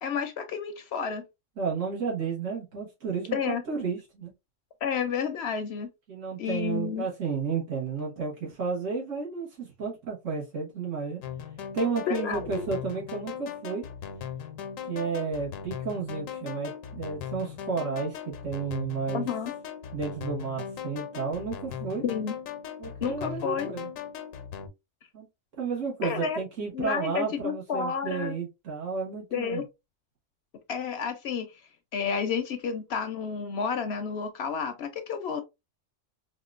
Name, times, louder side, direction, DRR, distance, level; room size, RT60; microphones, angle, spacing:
voice 1, 0.0-1.2 3.3-3.6 4.8-5.9 6.4-7.0 12.1-12.6 19.1-19.5 22.0-22.3 23.0-23.7 26.0-26.4 26.7-28.3 29.3-29.6 30.7-31.5 31.9-35.4, left 6 dB, 65° left, 0.7 m, -30 dB
voice 2, 1.6-4.3 6.1-11.2 11.7-13.9 14.9-19.3 19.9-22.0 22.8-23.9 25.1-25.3 25.6-29.6, right 5 dB, 75° right, 1.7 m, -32 dB
sound 1, 11.2-24.7, left 8 dB, 90° left, 1.0 m, -39 dB
4.3 x 2.4 x 2.4 m
omnidirectional pair, 1.3 m